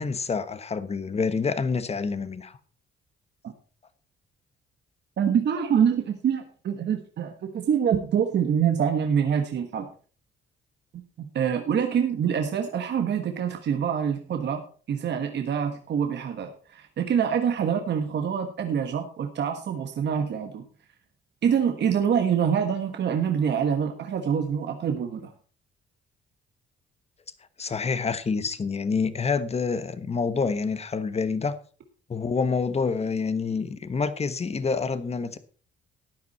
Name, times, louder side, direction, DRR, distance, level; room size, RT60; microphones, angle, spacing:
voice 1, 0.0-2.6 27.6-31.5 32.1-35.4, left 5 dB, 30° left, 1.2 m, -27 dB
voice 2, 5.2-9.9 10.9-14.6 14.9-20.6 21.4-25.3, right 8 dB, 60° right, 1.5 m, -25 dB
13.5 x 9.5 x 4.3 m
cardioid pair, 90°, 20 cm